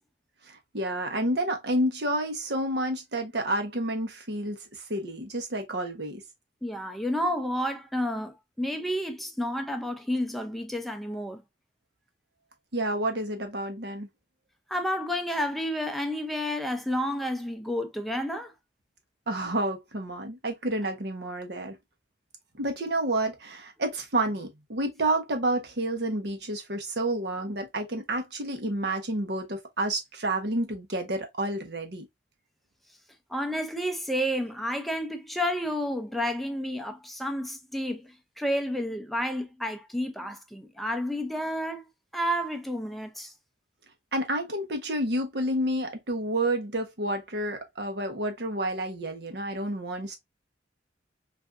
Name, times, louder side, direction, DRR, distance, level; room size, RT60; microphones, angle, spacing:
voice 1, 0.5-6.2 12.7-14.1 19.3-21.8 22.6-32.1 44.1-50.2, right 1 dB, 65° right, 0.9 m, -30 dB
voice 2, 6.6-11.4 14.7-18.5 33.3-41.9 42.1-43.3, equal, ahead, 0.5 m, -30 dB
3.5 x 2.6 x 2.5 m
head